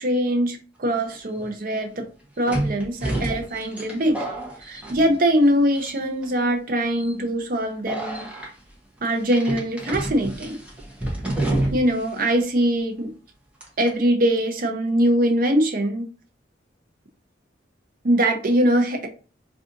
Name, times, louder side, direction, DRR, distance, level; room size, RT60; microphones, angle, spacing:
voice 1, 0.0-2.0 2.4-4.2 4.7-8.3 9.0-10.6 11.7-13.1 13.8-16.1 18.0-19.1, right 1 dB, 45° right, 4 dB, 0.6 m, -22 dB
sound 1, 1.1-1.2 2.5-5.5 5.7-6.2 6.9-7.1 7.9-8.5 9.3-12.0 12.3-12.4 13.6-13.9, right 1 dB, 5° right, 0.7 m, -29 dB
2.5 x 2.4 x 3.8 m, 0.36 s
head